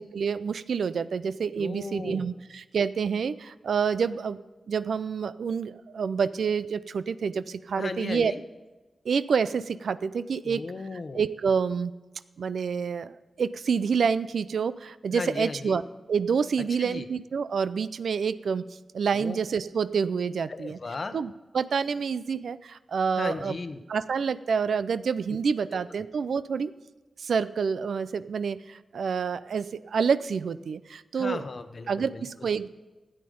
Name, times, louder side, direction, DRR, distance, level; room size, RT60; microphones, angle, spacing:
voice 1, 0.0-4.4 4.7-8.3 9.1-10.6 10.9-11.9 12.4-15.8 16.1-18.6 18.9-20.8 21.1-23.6 23.9-26.7 27.2-31.4 31.9-32.7, right 6 dB, 90° right, 15 dB, 0.4 m, -28 dB
voice 2, 1.6-2.3 7.8-8.4 10.4-11.2 15.1-15.8 16.6-17.1 19.1-19.4 20.5-21.2 23.2-23.8 31.2-32.3, left 3 dB, 45° left, 9 dB, 0.9 m, -35 dB
13.0 x 8.9 x 5.2 m, 1.2 s
wide cardioid pair, 120°, 0 cm